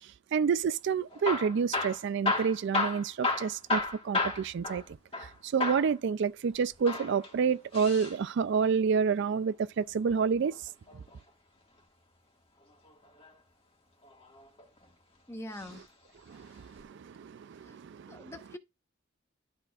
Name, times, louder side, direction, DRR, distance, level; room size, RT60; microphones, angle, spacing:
voice 1, 0.0-4.8 5.2-10.6 16.3-18.3, right 6 dB, 65° right, 0.4 m, -29 dB
Hammer / Drill, 1.1-5.3 5.6-5.9 6.7-8.2 9.9-11.1 12.8-13.3 14.0-14.8 15.5-15.8 16.1-16.2 16.8-16.9, left 3 dB, 30° left, 1.8 m, -33 dB
voice 2, 15.3-15.8 17.6-17.8 18.1-18.6, left 1 dB, 15° left, 0.9 m, -43 dB
12.5 x 4.3 x 2.4 m
head